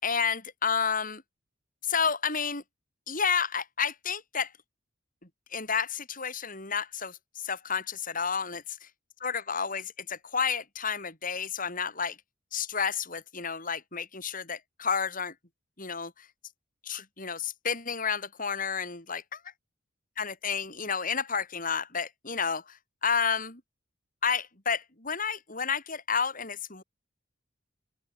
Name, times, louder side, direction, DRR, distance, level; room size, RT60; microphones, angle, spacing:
voice 1, 0.0-1.2 1.8-2.6 3.1-4.5 5.5-8.9 9.2-12.2 12.5-15.3 15.8-16.3 16.8-19.4 20.2-23.6 24.2-26.8, left 6 dB, 45° left, 5.9 m, -31 dB
open air
head